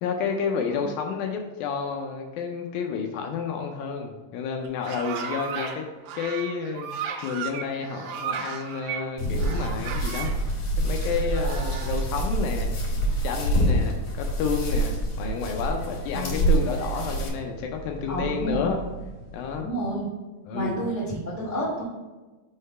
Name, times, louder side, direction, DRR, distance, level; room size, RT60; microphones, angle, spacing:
voice 1, 0.0-5.9 6.2-10.3 10.8-12.7 13.2-18.8 19.3-19.7 20.5-20.8, left 6 dB, 80° left, 3 dB, 2.2 m, -30 dB
sound 1, 4.6-5.8 6.1-9.0 9.4-10.4 10.9-12.1, right 7 dB, 85° right, 2.6 m, -35 dB
sound 2, 9.2-17.3, right 1 dB, 40° left, 2.4 m, -26 dB
sound 3, 14.6-19.6, right 3 dB, 55° left, 2.7 m, -39 dB
voice 2, 16.1-16.5 18.1-18.7 19.6-20.1 20.5-21.8, right 1 dB, 35° right, -8 dB, 0.7 m, -30 dB
6.2 x 3.8 x 5.3 m, 1.2 s
omnidirectional pair, 4.5 m